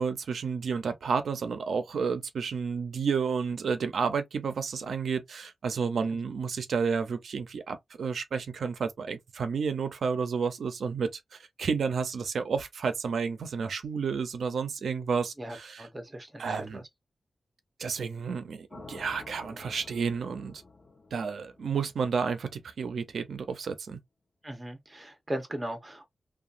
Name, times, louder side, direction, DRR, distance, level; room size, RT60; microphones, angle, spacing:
voice 1, 0.0-15.9 16.4-16.8 17.8-20.6 21.1-24.0, right 5 dB, 90° right, 0.5 m, -31 dB
voice 2, 15.4-16.8 24.4-26.1, right 1 dB, 20° right, 0.8 m, -38 dB
sound 1, 18.7-22.8, left 3 dB, 45° left, 0.7 m, -50 dB
2.8 x 2.3 x 2.4 m
wide cardioid pair, 140°, 0 cm